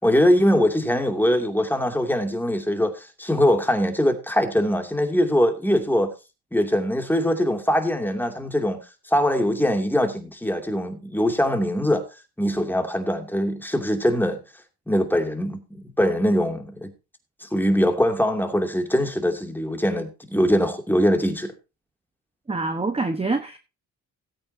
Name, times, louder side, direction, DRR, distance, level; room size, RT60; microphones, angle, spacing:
voice 1, 0.0-6.1 6.5-8.8 9.1-12.0 12.4-14.4 14.9-16.9 17.4-21.5, equal, 5° left, 2.6 m, -22 dB
voice 2, 22.5-23.6, right 3 dB, 15° right, 1.2 m, -25 dB
17.0 x 8.8 x 2.8 m
cardioid pair, 90°, 38 cm